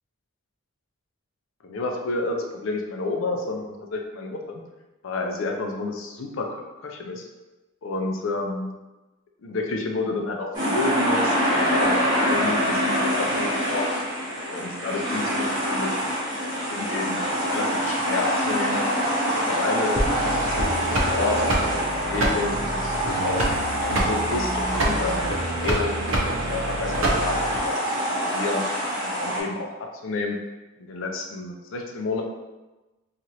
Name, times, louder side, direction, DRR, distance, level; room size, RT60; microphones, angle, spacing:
voice 1, 1.6-4.6 5.0-7.2 7.8-8.7 9.4-13.8 14.5-17.2 17.5-18.8 19.4-23.5 23.8-26.0 26.3-27.8 28.2-28.6 29.0-29.7 30.0-30.4 30.8-32.2, left 3 dB, 65° left, 2 dB, 0.4 m, -30 dB
sound 1, 10.5-29.4, equal, 20° right, 0.9 m, -26 dB
sound 2, 20.0-27.6, right 1 dB, 70° right, 0.6 m, -27 dB
2.9 x 2.4 x 2.8 m, 1.1 s
head